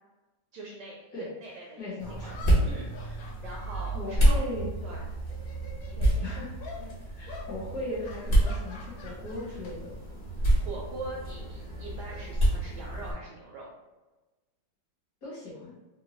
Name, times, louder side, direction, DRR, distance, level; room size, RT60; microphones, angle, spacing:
voice 1, 0.5-1.9 2.2-2.3 2.6-3.2 3.4-4.4 4.8-5.1 5.9-6.5 6.8-6.9 10.4-13.7, right 2 dB, 75° right, -3 dB, 1.0 m, -43 dB
sound 1, 1.4-1.5 2.2-4.9 5.2-6.2 6.6-6.8 7.3-7.5 8.0-9.7 10.0-10.3 11.5-13.0, left 4 dB, 75° left, 0.8 m, -48 dB
voice 2, 1.8-2.3 3.9-4.7 6.2-6.5 7.1-9.9 15.2-15.7, left 2 dB, 55° left, -7 dB, 1.2 m, -37 dB
sound 2, 2.0-13.1, right 1 dB, 40° left, 0.9 m, -28 dB
3.7 x 2.1 x 3.0 m, 1.1 s
omnidirectional pair, 2.3 m